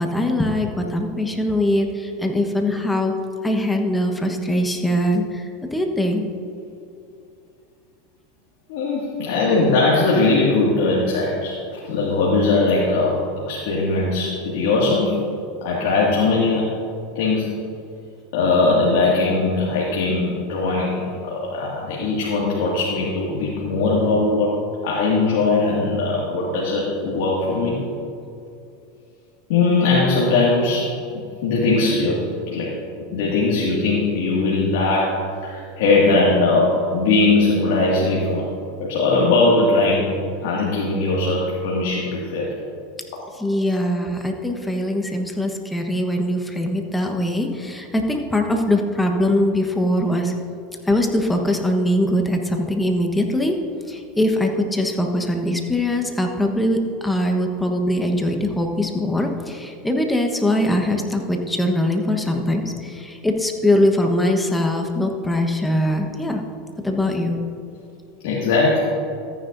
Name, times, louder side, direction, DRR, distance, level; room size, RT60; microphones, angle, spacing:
voice 1, 0.0-3.1 3.4-6.3 43.4-50.3 50.9-53.6 53.9-66.4 66.8-67.4, left 1 dB, 5° left, 3 dB, 1.2 m, -22 dB
voice 2, 8.7-11.6 11.8-13.2 13.5-15.3 15.6-16.7 17.2-17.6 18.3-24.5 24.8-27.8 29.5-30.9 31.1-38.5 38.8-42.5 43.6-43.8 68.2-68.8, left 3 dB, 75° left, -5 dB, 2.0 m, -20 dB
14.0 x 9.9 x 2.7 m, 2.6 s
supercardioid pair, 115°, 0 cm